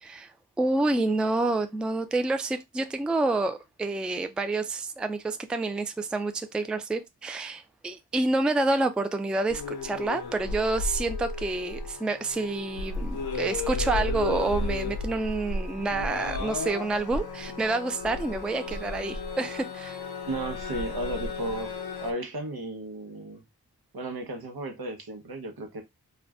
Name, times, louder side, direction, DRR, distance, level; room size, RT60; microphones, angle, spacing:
voice 1, 0.6-20.0, right 2 dB, 5° right, 0.3 m, -28 dB
sound 1, 9.5-22.1, left 3 dB, 80° left, 0.6 m, -33 dB
voice 2, 20.2-23.4 23.9-25.8, right 1 dB, 75° right, 0.8 m, -34 dB
2.4 x 2.1 x 3.4 m
wide cardioid pair, 50°, 37 cm